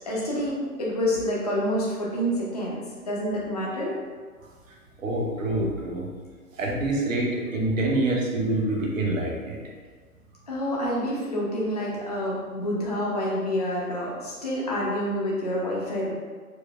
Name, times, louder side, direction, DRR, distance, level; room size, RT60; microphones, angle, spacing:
voice 1, 0.0-4.0 10.5-16.1, equal, 30° left, -6 dB, 0.4 m, -28 dB
voice 2, 5.0-6.1 6.6-9.6, right 2 dB, 55° right, -2 dB, 1.0 m, -26 dB
4.7 x 2.0 x 3.2 m, 1.6 s
figure-of-eight pair, 135°, 46 cm